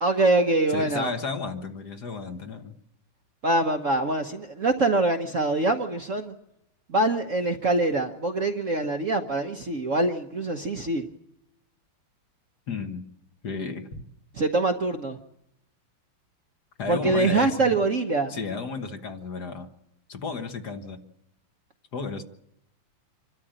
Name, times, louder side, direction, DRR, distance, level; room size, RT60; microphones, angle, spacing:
voice 1, 0.0-1.1 3.4-6.3 6.9-11.1 14.3-15.2 16.9-18.4, right 2 dB, 45° right, 5 dB, 1.2 m, -24 dB
voice 2, 0.7-2.7 12.7-13.0 13.4-14.0 16.8-17.9 18.3-19.7 20.1-21.0 21.9-22.2, left 4 dB, 50° left, 6 dB, 1.9 m, -33 dB
26.0 x 13.0 x 8.8 m, 0.83 s
omnidirectional pair, 2.4 m